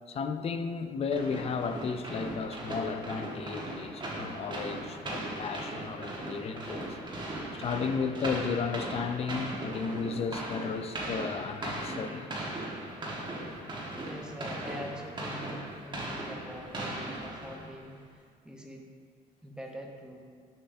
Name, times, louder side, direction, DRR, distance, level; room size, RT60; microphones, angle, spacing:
voice 1, 0.1-7.0 7.5-12.3, left 5 dB, 35° left, 0.4 m, -34 dB
sound 1, 1.1-17.9, right 1 dB, 25° right, 1.3 m, -38 dB
voice 2, 14.0-18.9 19.4-20.2, equal, 5° right, 0.8 m, -44 dB
6.7 x 5.6 x 2.6 m
cardioid pair, 110°, 17 cm